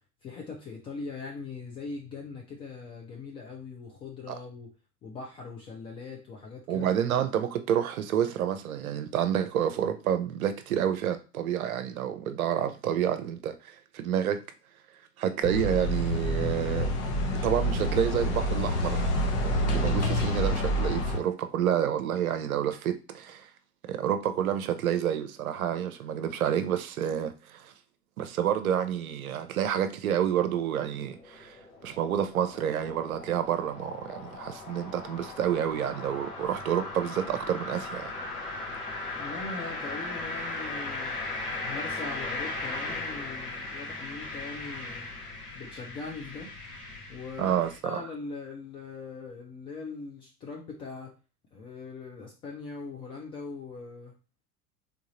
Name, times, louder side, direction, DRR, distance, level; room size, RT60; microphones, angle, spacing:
voice 1, 0.2-4.7 5.0-6.9 39.2-41.2 41.6-45.1 45.5-46.5 47.1-51.1 51.5-54.2, left 4 dB, 15° left, 0.3 m, -41 dB
voice 2, 6.7-14.4 15.2-16.9 17.4-19.0 19.4-23.5 23.9-27.7 28.2-31.6 31.8-38.1 47.4-48.0, right 9 dB, 65° right, 0.7 m, -29 dB
sound 1, 15.4-21.2, equal, 45° left, 1.0 m, -27 dB
sound 2, 30.5-47.8, left 2 dB, 80° left, 1.9 m, -38 dB
3.6 x 3.6 x 3.0 m
figure-of-eight pair, 80°, 46 cm